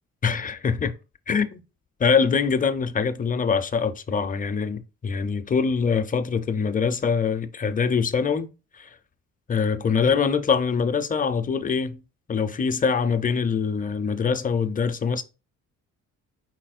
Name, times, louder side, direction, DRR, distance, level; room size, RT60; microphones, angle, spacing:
voice 1, 0.2-0.9 1.3-1.5 2.0-8.5 8.7-8.9 9.5-12.0 12.3-15.2, left 5 dB, 30° left, 0.5 m, -24 dB
4.3 x 4.1 x 2.4 m
cardioid pair, 90°, 30 cm